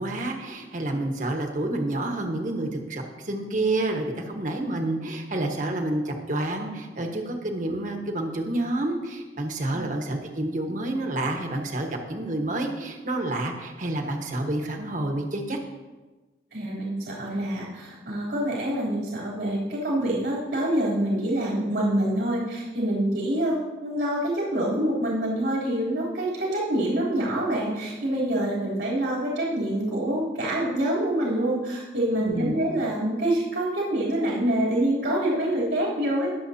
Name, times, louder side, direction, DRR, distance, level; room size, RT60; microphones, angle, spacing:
voice 1, 0.0-15.6 32.2-32.5, right 2 dB, 45° right, 2 dB, 1.4 m, -29 dB
voice 2, 16.5-36.3, right 1 dB, 85° right, -7 dB, 3.4 m, -26 dB
22.0 x 7.5 x 2.9 m, 1.2 s
head